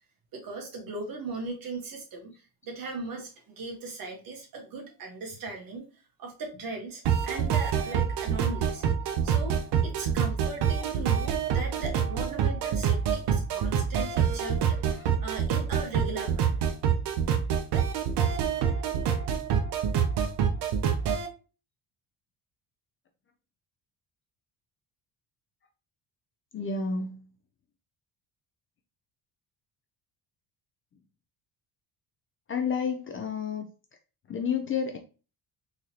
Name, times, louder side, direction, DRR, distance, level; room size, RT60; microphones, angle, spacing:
voice 1, 0.3-8.8 9.2-16.7, right 3 dB, 55° right, 2 dB, 1.4 m, -39 dB
sound 1, 7.1-21.3, right 7 dB, 70° right, 0.7 m, -26 dB
voice 2, 26.5-27.3 32.5-33.6 34.3-35.0, left 6 dB, 30° left, 4 dB, 0.4 m, -30 dB
3.9 x 3.0 x 2.8 m, 0.34 s
cardioid pair, 145°, 42 cm